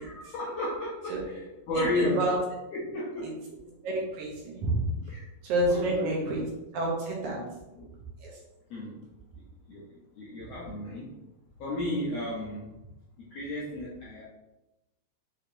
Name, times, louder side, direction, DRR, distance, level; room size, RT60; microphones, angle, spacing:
voice 1, 0.0-2.3 2.7-3.4 5.0-5.2 5.7-6.2 7.3-7.5 7.7-7.9 8.7-9.1 9.7-11.2 11.6-12.9 13.2-14.2, left 1 dB, 70° left, -7 dB, 1.5 m, -33 dB
voice 2, 1.8-2.4 3.8-4.9 5.4-6.4 6.7-7.4 8.2-8.3, right 2 dB, 70° right, -2 dB, 2.1 m, -29 dB
6.7 x 2.8 x 2.7 m, 0.98 s
omnidirectional pair, 3.9 m